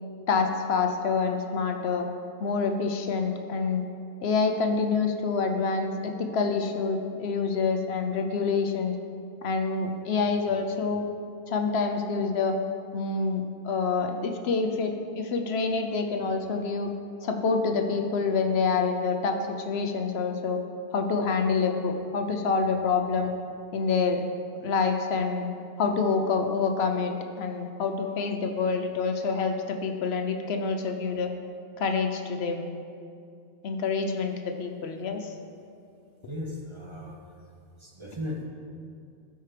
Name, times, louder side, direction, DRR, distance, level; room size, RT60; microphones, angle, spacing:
voice 1, 0.3-2.1 2.4-3.8 4.2-8.9 9.4-11.0 11.5-12.5 12.9-16.9 17.2-19.4 19.7-20.6 20.9-23.3 23.7-24.2 24.6-25.5 25.8-31.3 31.8-32.7 33.6-34.3 34.6-35.3 36.2-36.3, left 4 dB, 80° left, 5 dB, 0.9 m, -27 dB
voice 2, 36.3-37.1 37.8-38.5, left 1 dB, 30° right, -1 dB, 0.7 m, -36 dB
13.0 x 4.5 x 3.3 m, 2.4 s
omnidirectional pair, 1.1 m